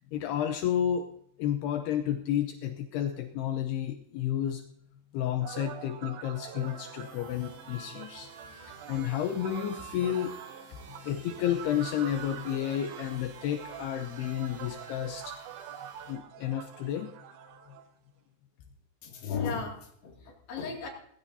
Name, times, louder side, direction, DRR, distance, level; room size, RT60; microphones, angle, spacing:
voice 1, 0.1-1.1 1.4-4.6 5.1-8.3 8.6-10.4 11.0-15.4 16.1-17.1, left 10 dB, 80° left, 6 dB, 2.3 m, -31 dB
sound 1, 5.4-17.8, right 9 dB, 75° right, 3.4 m, -45 dB
sound 2, 6.6-16.2, right 6 dB, 60° right, 4.2 m, -50 dB
voice 2, 19.0-20.9, left 5 dB, 60° left, 0 dB, 4.3 m, -35 dB
19.5 x 16.0 x 2.7 m, 0.70 s
omnidirectional pair, 5.7 m